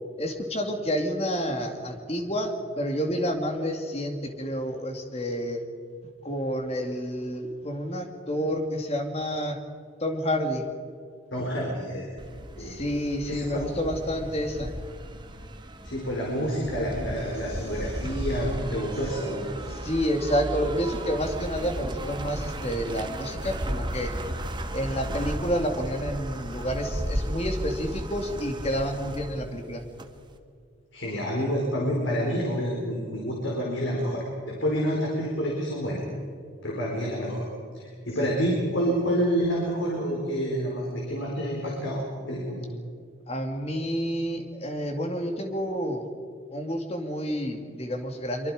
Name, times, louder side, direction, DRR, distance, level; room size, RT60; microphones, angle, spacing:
voice 1, 0.2-5.6 6.2-9.6 10.0-10.7 12.6-14.7 19.7-24.1 24.7-29.8 43.3-46.0 46.5-48.5, equal, 30° left, 4 dB, 2.4 m, -29 dB
voice 2, 11.3-12.0 12.5-12.8 13.3-13.6 15.8-19.5 30.9-36.0 36.6-37.5 37.7-42.6, equal, 70° left, -2 dB, 4.7 m, -28 dB
sound 1, 12.2-30.3, equal, 20° right, 1.3 m, -35 dB
25.0 x 24.0 x 5.0 m, 2.3 s
head